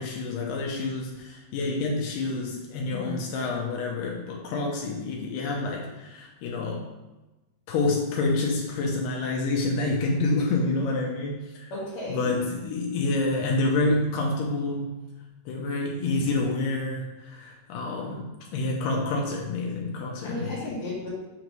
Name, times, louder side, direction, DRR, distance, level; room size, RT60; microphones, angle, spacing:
voice 1, 0.0-6.9 7.7-11.7 12.1-15.0 15.5-20.8, left 2 dB, 85° left, -1 dB, 2.3 m, -28 dB
voice 2, 11.7-12.3 20.2-21.1, left 2 dB, 65° left, -9 dB, 2.4 m, -34 dB
6.3 x 3.0 x 5.2 m, 1.1 s
omnidirectional pair, 3.8 m